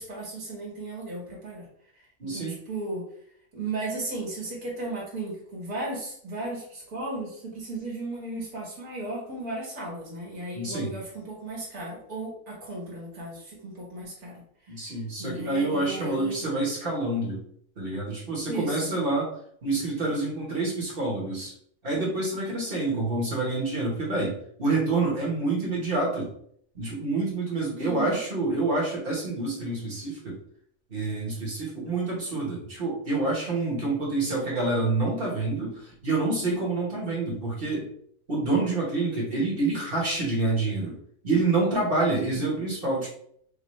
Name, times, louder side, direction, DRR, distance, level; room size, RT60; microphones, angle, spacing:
voice 1, 0.0-1.7 2.2-3.1 3.5-14.4 15.2-16.4 18.5-18.9 27.8-28.2, right 2 dB, 75° right, -4 dB, 2.0 m, -35 dB
voice 2, 2.2-2.5 10.5-10.9 14.7-17.4 17.8-19.3 19.6-21.5 21.8-26.3 26.7-30.4 30.9-37.9 38.3-41.0 41.2-43.1, right 2 dB, 40° right, -4 dB, 1.4 m, -27 dB
5.3 x 2.4 x 3.1 m, 0.65 s
omnidirectional pair, 1.6 m